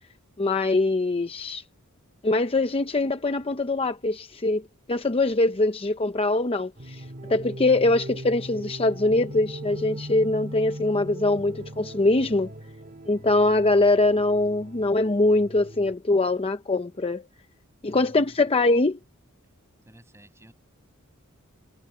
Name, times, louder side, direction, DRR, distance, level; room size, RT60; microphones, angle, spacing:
voice 1, 0.4-1.6 2.2-4.6 4.9-12.5 13.1-17.2 17.8-19.0, left 2 dB, 25° left, 0.7 m, -23 dB
sound 1, 6.8-15.9, right 1 dB, 45° right, 2.1 m, -39 dB
voice 2, 17.9-18.4 19.9-20.5, equal, 15° right, 7.9 m, -51 dB
head